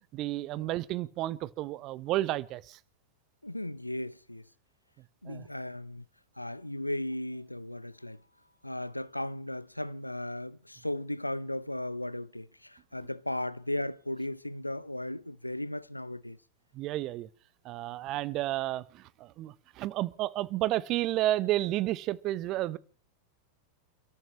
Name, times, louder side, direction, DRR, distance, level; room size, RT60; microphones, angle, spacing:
voice 1, 0.1-2.8 5.3-5.5 16.7-17.3 17.6-22.8, right 15 dB, 40° right, 0.9 m, -31 dB
voice 2, 3.4-4.4 5.2-6.0 6.4-8.2 8.6-16.4, left 1 dB, 85° left, 0.7 m, -36 dB
29.0 x 13.5 x 3.1 m
figure-of-eight pair, 90°, 0 cm